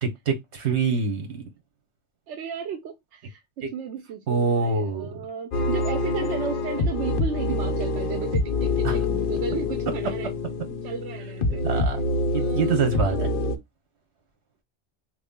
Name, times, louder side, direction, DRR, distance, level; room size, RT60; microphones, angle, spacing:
voice 1, 0.0-1.4 3.6-3.7 4.3-5.1 8.8-9.0 11.6-12.0 12.3-13.2, right 4 dB, 70° right, 1.4 m, -25 dB
voice 2, 2.3-10.3 10.8-11.8 12.3-13.3, right 7 dB, 90° right, 0.9 m, -34 dB
sound 1, 5.5-13.6, left 3 dB, 55° left, 0.8 m, -26 dB
3.3 x 2.4 x 3.6 m
omnidirectional pair, 1.2 m